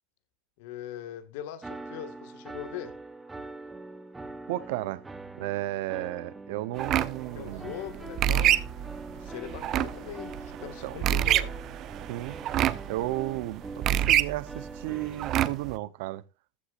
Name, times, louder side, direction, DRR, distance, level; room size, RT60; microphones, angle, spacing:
voice 1, 0.6-2.9 7.3-11.6, left 11 dB, 65° left, 2.0 m, -41 dB
sound 1, 1.6-15.3, right 2 dB, 10° right, 1.0 m, -43 dB
voice 2, 4.5-5.0 5.3-7.7 10.8-11.1 12.1-12.4 12.9-16.2, right 17 dB, 70° right, 0.9 m, -33 dB
sound 2, 6.8-15.8, right 12 dB, 40° right, 0.8 m, -27 dB
15.0 x 11.5 x 2.6 m
supercardioid pair, 140°, 0 cm